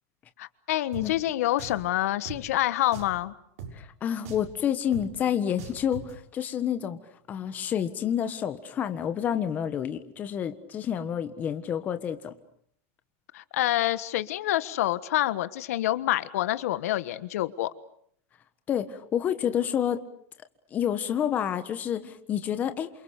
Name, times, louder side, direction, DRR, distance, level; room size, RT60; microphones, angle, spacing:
voice 1, 0.4-3.3 13.3-17.7, left 14 dB, 80° left, 14 dB, 1.4 m, -27 dB
Drum, 0.9-1.1 1.6-1.8 2.3-2.4 2.9-3.2 3.6-3.7 4.3-4.5 4.9-5.1 5.6-6.1, right 6 dB, 85° right, 6.5 m, -40 dB
voice 2, 3.7-7.0 7.3-12.3 18.7-20.0 20.7-22.9, left 9 dB, 20° left, 10 dB, 1.5 m, -29 dB
28.5 x 28.0 x 6.7 m, 0.65 s
supercardioid pair, 175°, 8 cm